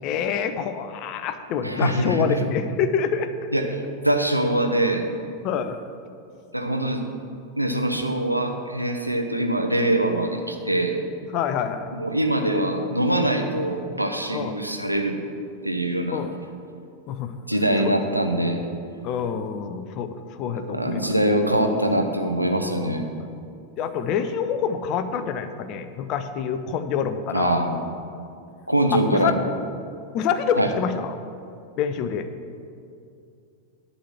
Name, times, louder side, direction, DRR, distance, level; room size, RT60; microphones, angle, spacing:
voice 1, 0.0-3.3 5.4-5.8 11.3-11.9 14.3-14.5 16.1-16.3 17.1-17.3 17.8-18.0 19.0-21.0 23.8-27.6 28.9-29.4 30.1-31.1 31.8-32.3, left 7 dB, 40° left, 10 dB, 0.6 m, -26 dB
voice 2, 1.6-2.5 3.5-5.0 6.5-7.0 7.6-11.0 11.9-15.2 15.6-16.2 17.5-18.6 20.7-23.1 27.3-27.8 28.7-29.3 30.6-30.7, right 1 dB, 90° right, 4 dB, 0.8 m, -23 dB
11.0 x 4.2 x 7.2 m, 2.5 s
figure-of-eight pair, 90°, 0 cm